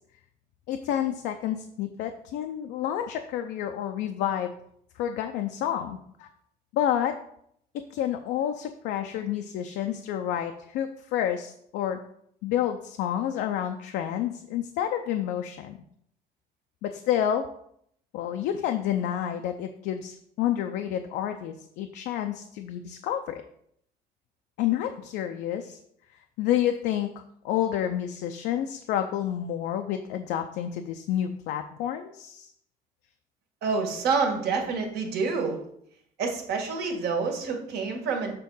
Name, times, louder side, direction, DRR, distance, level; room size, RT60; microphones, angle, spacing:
voice 1, 0.7-4.5 5.0-6.3 6.7-7.1 7.9-12.0 12.4-15.8 16.8-17.4 18.1-23.4 24.6-25.8 26.4-27.1 27.4-32.5, left 10 dB, 90° left, 6 dB, 0.5 m, -29 dB
voice 2, 33.6-35.6 36.2-38.3, right 4 dB, 75° right, 2 dB, 1.7 m, -27 dB
6.7 x 3.6 x 5.5 m, 0.70 s
cardioid pair, 110°, 17 cm